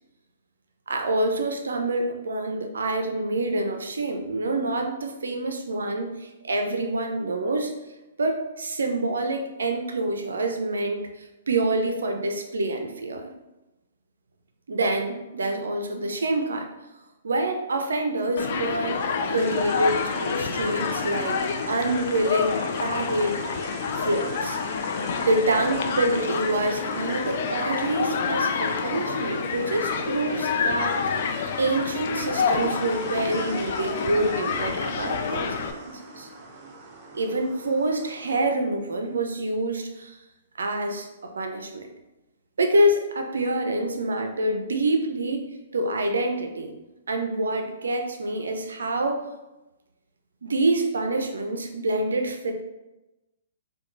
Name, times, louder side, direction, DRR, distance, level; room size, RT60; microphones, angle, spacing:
voice 1, 0.9-7.7 8.2-13.3 14.7-16.7 17.2-19.0 19.3-23.4 24.0-24.6 25.2-36.3 37.1-40.2 40.6-41.9 42.6-45.4 45.7-46.7 47.1-49.2 50.4-52.5, right 2 dB, 80° right, 5 dB, 0.5 m, -26 dB
Human group actions, 18.4-35.7, left 5 dB, 55° left, 0.3 m, -28 dB
sound 1, 19.3-38.3, right 3 dB, 30° right, 0.6 m, -42 dB
4.2 x 2.3 x 2.6 m, 1.0 s
hypercardioid pair, 130°, 0 cm